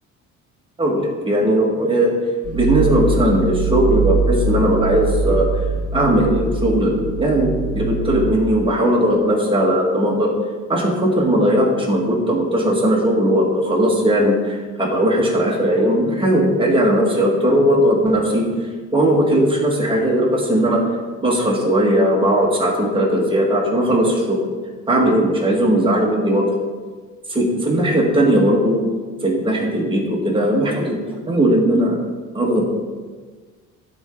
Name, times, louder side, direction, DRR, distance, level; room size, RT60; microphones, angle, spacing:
voice 1, 0.8-2.1 2.5-5.4 5.9-10.3 10.7-18.5 18.9-20.8 21.2-24.4 24.9-26.5 27.3-28.8 29.2-32.0 32.3-32.7, right 1 dB, 15° right, -2 dB, 1.8 m, -18 dB
sound 1, 2.4-8.3, right 4 dB, 50° right, 1.0 m, -22 dB
13.5 x 4.5 x 3.8 m, 1.4 s
cardioid pair, 140°, 30 cm